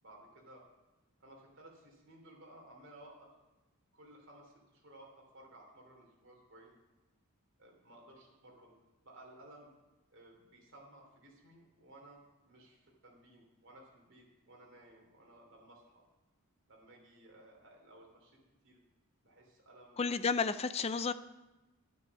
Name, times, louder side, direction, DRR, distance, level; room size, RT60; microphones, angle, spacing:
voice 1, 0.0-0.6 1.2-3.3 3.9-6.8 7.6-8.7 9.0-9.7 10.1-16.0 16.7-18.4 18.6-18.8 19.2-20.0, right 1 dB, 55° right, 0 dB, 3.0 m, -57 dB
voice 2, 20.0-21.1, left 5 dB, 30° left, 13 dB, 0.4 m, -32 dB
10.0 x 9.5 x 5.9 m, 1.1 s
head